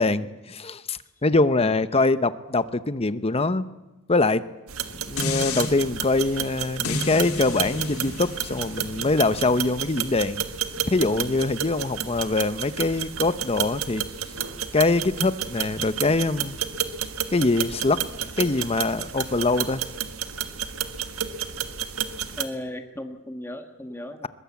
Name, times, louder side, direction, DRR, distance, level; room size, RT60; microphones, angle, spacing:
voice 1, 0.0-3.6 4.1-4.4 4.9-10.5 10.9-14.0 14.7-16.6 17.3-19.8, left 2 dB, 25° left, 13 dB, 0.8 m, -23 dB
sound 1, 4.7-22.4, right 8 dB, 70° right, 1.5 m, -31 dB
sound 2, 5.2-5.7 6.8-12.0 12.4-12.5, left 3 dB, 80° left, 3.2 m, -34 dB
voice 2, 22.4-24.3, left 1 dB, 10° left, 6 dB, 1.4 m, -36 dB
22.0 x 21.0 x 8.4 m, 1.1 s
head